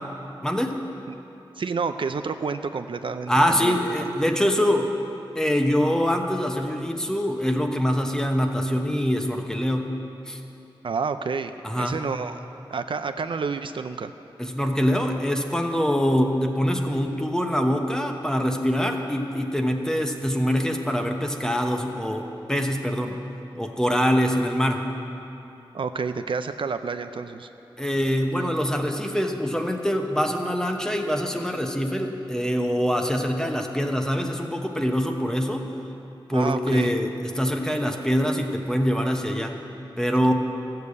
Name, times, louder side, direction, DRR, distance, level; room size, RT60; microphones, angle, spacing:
voice 1, 0.4-0.8 3.3-4.9 5.3-9.9 10.3-10.4 11.6-12.0 14.4-23.2 23.6-24.8 27.8-35.7 36.3-39.6 40.0-40.3, equal, 5° left, 3 dB, 1.0 m, -24 dB
voice 2, 1.6-4.1 10.8-11.5 11.8-12.4 12.7-14.1 25.7-27.5 36.3-36.9, right 5 dB, 65° right, 9 dB, 0.5 m, -29 dB
14.5 x 6.8 x 8.3 m, 3.0 s
wide cardioid pair, 110°, 9 cm